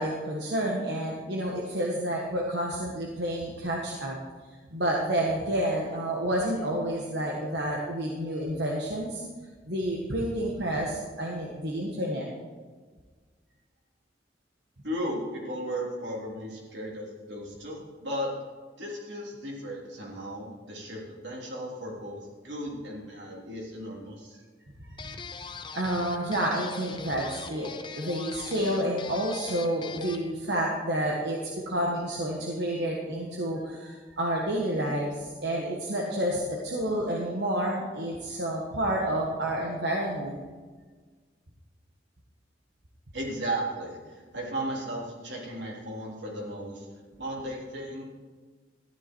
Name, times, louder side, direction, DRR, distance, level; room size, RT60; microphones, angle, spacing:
voice 1, 0.0-4.2 4.7-9.2 9.7-12.3 25.0-25.1 25.7-40.4, right 1 dB, 70° right, -2 dB, 1.5 m, -29 dB
voice 2, 14.8-18.4 18.8-24.4 43.1-46.9 47.2-48.0, right 1 dB, 90° right, -3 dB, 3.4 m, -35 dB
sound 1, 25.0-30.3, left 5 dB, 25° left, 0.6 m, -42 dB
13.5 x 10.5 x 4.6 m, 1.4 s
head